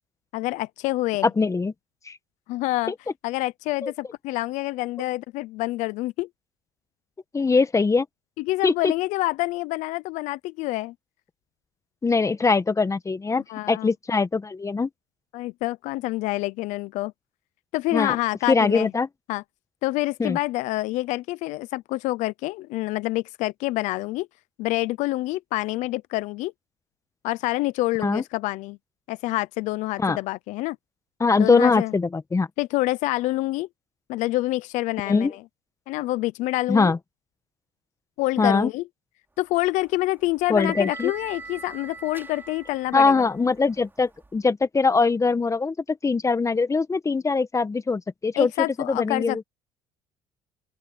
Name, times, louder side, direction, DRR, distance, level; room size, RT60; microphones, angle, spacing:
voice 1, 0.3-1.3 2.5-2.9 3.2-6.3 8.4-10.9 13.5-13.9 15.3-17.1 17.7-18.9 19.3-19.4 19.8-24.3 24.6-26.5 27.2-28.8 29.1-30.8 31.4-31.9 32.6-33.7 34.1-35.4 35.9-36.9 38.2-38.8 39.4-43.3 48.4-49.4, left 19 dB, 75° left, 0.7 m, -27 dB
voice 2, 1.4-1.7 2.1-2.2 3.8-3.9 7.3-8.1 8.6-8.9 12.0-14.9 17.9-18.2 18.5-19.1 20.2-20.4 28.0-28.2 30.0-30.2 31.2-32.5 35.1-35.3 36.7-37.0 38.4-38.7 40.5-41.1 42.9-48.5 48.8-49.4, left 4 dB, 25° left, 1.4 m, -22 dB
sound 1, 39.5-44.4, right 3 dB, 15° right, 4.2 m, -42 dB
open air
supercardioid pair, 75°, 13 cm